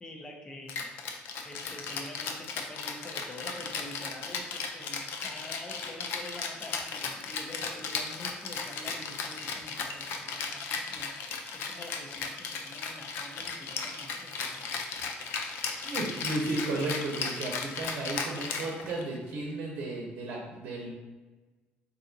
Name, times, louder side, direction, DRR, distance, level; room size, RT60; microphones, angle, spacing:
voice 1, 0.0-0.9 1.4-15.0, left 1 dB, 20° left, 2 dB, 0.5 m, -46 dB
Rattle (instrument), 0.7-19.2, left 5 dB, 75° left, 0.4 m, -36 dB
voice 2, 15.8-20.9, right 2 dB, 65° right, -2 dB, 0.7 m, -34 dB
4.6 x 2.7 x 2.6 m, 1.2 s
cardioid pair, 145°, 4 cm